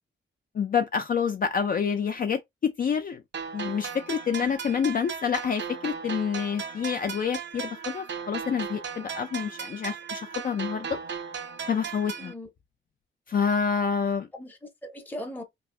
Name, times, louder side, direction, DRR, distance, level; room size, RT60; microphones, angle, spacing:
voice 1, 0.5-3.2 3.5-11.0 11.7-12.3 13.3-14.3, left 6 dB, 45° left, 0.4 m, -28 dB
sound 1, 3.3-12.3, right 6 dB, 60° right, 0.5 m, -37 dB
voice 2, 12.2-12.5 14.3-15.4, left 1 dB, 10° left, 0.7 m, -39 dB
3.0 x 2.4 x 3.7 m
wide cardioid pair, 140°, 21 cm